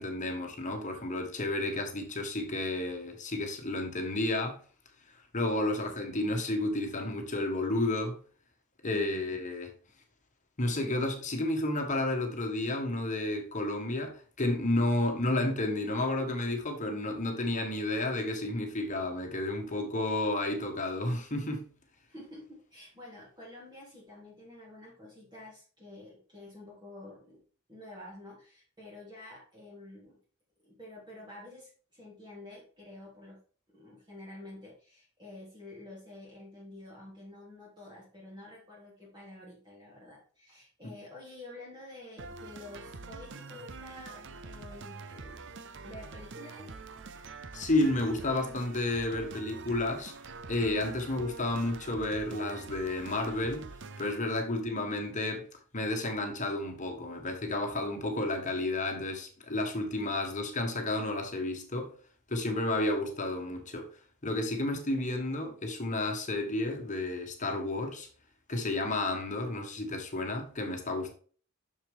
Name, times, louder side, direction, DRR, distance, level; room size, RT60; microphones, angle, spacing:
voice 1, 0.0-4.6 5.3-8.2 8.8-9.7 10.6-21.7 47.5-50.1 50.5-53.6 54.0-55.4 55.7-61.9 62.3-63.9 64.2-68.1 68.5-71.1, left 2 dB, 35° left, 1.6 m, -31 dB
voice 2, 8.9-9.3 22.1-27.4 27.7-30.2 30.7-33.4 33.7-45.4 45.8-46.7 54.5-54.7, left 1 dB, 20° right, 3.3 m, -49 dB
sound 1, 42.2-54.2, right 3 dB, 55° right, 0.7 m, -45 dB
6.9 x 6.7 x 3.6 m
head